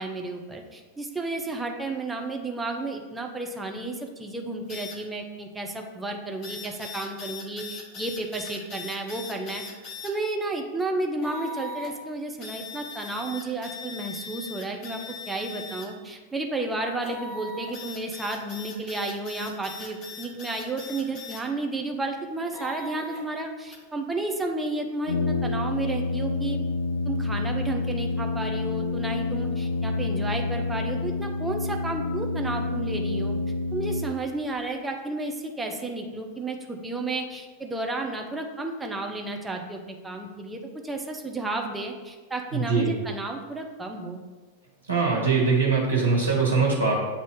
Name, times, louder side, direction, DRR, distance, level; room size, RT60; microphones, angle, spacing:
voice 1, 0.0-9.6 10.0-15.0 15.3-26.6 27.1-33.4 33.7-44.2, right 2 dB, 10° right, 2 dB, 0.6 m, -32 dB
sound 1, 4.7-5.0 6.4-10.1 11.2-11.9 12.4-15.9 17.0-21.4 22.5-23.2 23.7-23.8, left 3 dB, 35° left, 1.0 m, -39 dB
Brass instrument, 25.1-34.5, left 3 dB, 80° left, 0.4 m, -28 dB
voice 2, 42.5-42.9 44.8-46.9, right 4 dB, 80° right, -3 dB, 1.5 m, -22 dB
7.7 x 2.7 x 4.7 m, 1.3 s
figure-of-eight pair, 90°, 0 cm